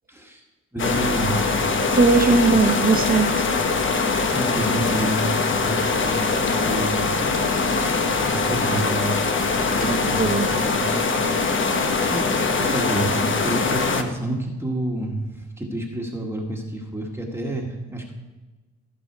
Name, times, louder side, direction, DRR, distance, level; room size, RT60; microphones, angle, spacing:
voice 1, 0.1-0.4 0.7-1.4 4.3-5.3 5.5-7.1 8.2-11.7 12.0-18.1, right 1 dB, 10° right, 0 dB, 1.6 m, -29 dB
sound 1, 0.8-14.0, left 4 dB, 40° left, 1.1 m, -22 dB
voice 2, 1.9-3.3 9.8-10.5, right 4 dB, 30° right, 5 dB, 1.2 m, -19 dB
15.0 x 5.4 x 4.7 m, 1.2 s
cardioid pair, 90°, 30 cm